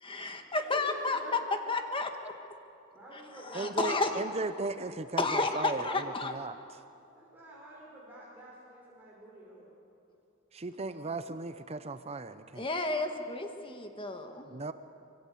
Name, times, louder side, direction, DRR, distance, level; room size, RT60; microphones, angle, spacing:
voice 1, 0.0-1.4 1.7-2.1 3.1-4.2 5.2-6.3 12.6-14.5, left 3 dB, 25° left, 5 dB, 1.6 m, -32 dB
voice 2, 0.7-1.3 2.9-4.8 7.1-9.7, right 1 dB, 10° right, -7 dB, 5.6 m, -48 dB
voice 3, 3.5-5.9 6.2-6.6 10.5-12.7 14.5-14.7, right 3 dB, 30° right, 11 dB, 0.6 m, -36 dB
25.0 x 23.5 x 8.4 m, 2.7 s
head